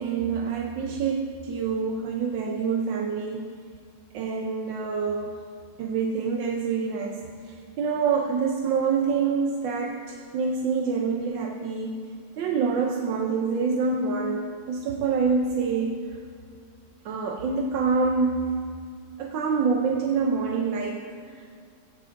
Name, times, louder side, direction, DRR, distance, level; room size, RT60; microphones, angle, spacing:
voice 1, 0.0-3.5 4.1-5.4 5.8-12.0 12.4-16.0 17.0-18.6 19.2-21.5, right 5 dB, 80° right, 1 dB, 1.4 m, -26 dB
17.0 x 10.5 x 2.6 m, 2.2 s
omnidirectional pair, 2.0 m